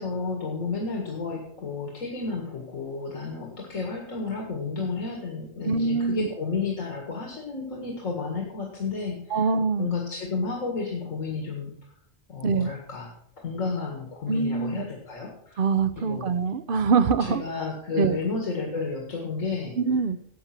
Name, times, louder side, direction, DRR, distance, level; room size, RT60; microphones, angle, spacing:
voice 1, 0.0-9.5 9.8-11.7 12.3-13.1 13.4-15.6 16.0-16.2 17.2-19.8, left 4 dB, 85° left, 0 dB, 2.3 m, -31 dB
voice 2, 5.6-6.3 9.3-9.9 12.4-12.7 14.3-14.8 15.6-17.4 18.0-18.2 19.8-20.2, right 5 dB, 50° right, 13 dB, 0.7 m, -24 dB
12.0 x 8.0 x 5.9 m, 0.68 s
omnidirectional pair, 1.3 m